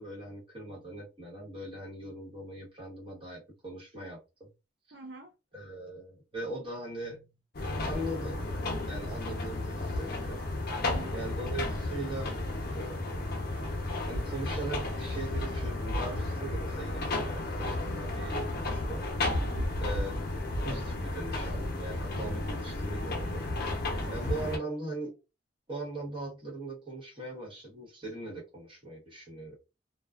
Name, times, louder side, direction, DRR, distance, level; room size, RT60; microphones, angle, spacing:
voice 1, 0.0-4.5 5.5-7.4 7.8-8.4 8.9-10.5 11.1-12.4 12.7-13.0 14.1-19.1 19.8-20.1 20.4-23.5 24.1-25.2 25.7-29.6, right 2 dB, 30° right, 1.1 m, -40 dB
voice 2, 4.9-5.3 10.8-11.2 19.4-19.8 24.0-24.6, right 2 dB, 60° right, 0.5 m, -47 dB
sound 1, 7.5-24.6, left 2 dB, 55° left, 0.7 m, -33 dB
2.3 x 2.3 x 2.3 m
head